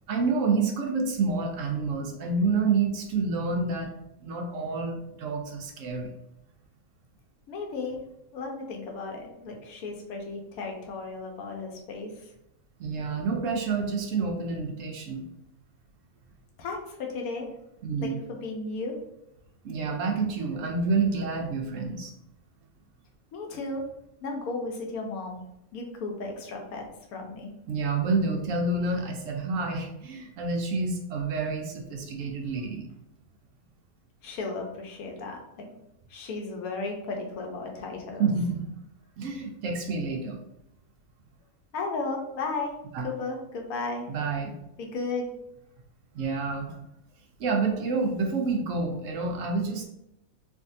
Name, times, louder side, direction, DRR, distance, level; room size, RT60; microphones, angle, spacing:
voice 1, 0.1-3.9 4.2-6.1 12.8-15.2 17.8-18.2 19.6-22.1 27.7-32.9 38.2-38.6 39.2-40.4 42.9-43.0 44.1-44.5 46.1-46.8 47.4-49.9, right 4 dB, 65° right, 2 dB, 0.9 m, -28 dB
voice 2, 7.5-8.0 8.3-12.3 16.6-17.5 18.0-18.9 23.3-23.8 24.2-25.4 25.7-26.8 27.1-27.5 34.2-35.7 36.1-38.3 41.7-42.7 43.0-44.1 44.8-45.3, left 3 dB, 80° left, 2 dB, 1.2 m, -34 dB
3.5 x 2.6 x 2.6 m, 0.83 s
omnidirectional pair, 1.5 m